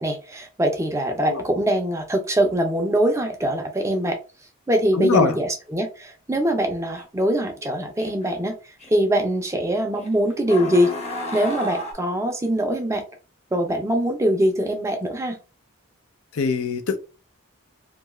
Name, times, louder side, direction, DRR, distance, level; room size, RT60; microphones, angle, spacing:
voice 1, 0.0-4.2 4.7-8.6 8.9-10.9 11.3-13.0 13.5-15.4, right 1 dB, 15° right, 0.4 m, -23 dB
voice 2, 4.9-5.4 16.3-17.0, left 4 dB, 75° left, 0.5 m, -22 dB
sound 1, 7.0-7.1 8.0-8.3 8.8-8.9 10.0-10.1 10.5-11.9, left 1 dB, 30° left, 0.7 m, -31 dB
2.7 x 2.3 x 3.0 m
head